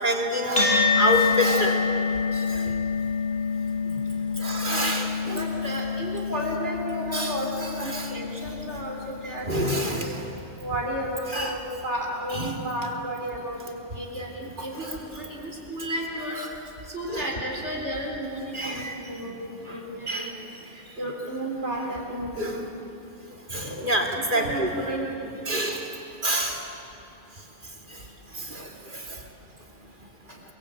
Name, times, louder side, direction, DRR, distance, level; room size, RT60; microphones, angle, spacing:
voice 1, 0.0-1.8 2.5-2.7 4.4-5.4 7.1-7.3 7.6-8.1 9.5-10.2 11.3-11.6 12.3-12.6 14.8-15.0 17.1-17.3 18.5-19.0 19.7-19.8 20.1-20.3 22.4-22.6 23.5-24.7 25.5-25.9 26.2-26.6 28.4-29.0, equal, 45° right, 1 dB, 3.0 m, -27 dB
sound 1, 0.6-9.2, left 5 dB, 50° left, 6.3 m, -27 dB
voice 2, 5.2-7.5 7.8-9.7 10.0-10.1 10.6-16.4 16.9-20.3 21.0-22.6 24.3-25.3, right 1 dB, 90° right, 0 dB, 4.3 m, -32 dB
29.5 x 23.0 x 8.5 m, 2.7 s
omnidirectional pair, 1.1 m